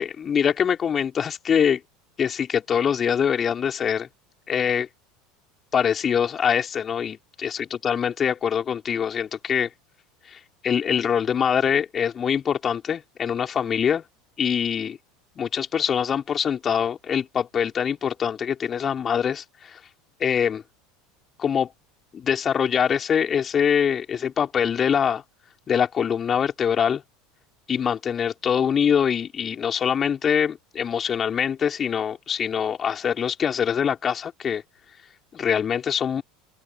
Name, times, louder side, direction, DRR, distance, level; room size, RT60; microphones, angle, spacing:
voice 1, 0.0-1.8 2.2-4.1 4.5-4.9 5.7-9.7 10.3-14.0 14.4-15.0 15.4-19.8 20.2-20.6 21.4-21.7 22.1-25.2 25.7-27.0 27.7-34.6 35.3-36.2, left 8 dB, 30° left, 4.7 m, -24 dB
open air
figure-of-eight pair, 75°, 0 cm